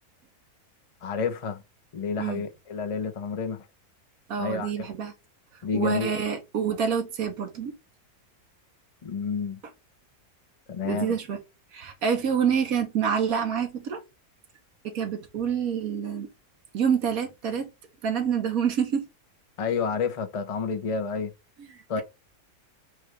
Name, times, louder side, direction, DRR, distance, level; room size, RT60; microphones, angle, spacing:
voice 1, 1.0-1.6 1.9-3.6 4.4-4.9 5.6-6.2 9.0-9.6 10.7-11.2 19.6-21.3 21.9-22.0, left 5 dB, 45° left, 0.4 m, -30 dB
voice 2, 4.3-5.1 5.7-7.8 10.8-11.4 11.7-14.0 14.8-16.3 16.7-17.7 18.0-19.1, right 7 dB, 65° right, 1.4 m, -27 dB
4.8 x 2.4 x 4.6 m
omnidirectional pair, 1.7 m